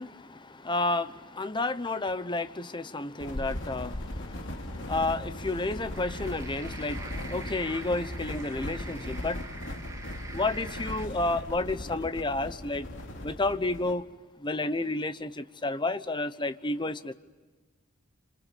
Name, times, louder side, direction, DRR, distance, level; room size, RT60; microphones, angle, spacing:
voice 1, 0.0-9.4 10.3-12.9 13.2-14.0 14.4-17.1, left 2 dB, 25° left, 1.0 m, -31 dB
sound 1, 3.2-13.9, left 1 dB, 65° left, 2.9 m, -38 dB
sound 2, 5.9-11.1, right 3 dB, 15° right, 2.0 m, -45 dB
28.0 x 27.5 x 6.9 m
head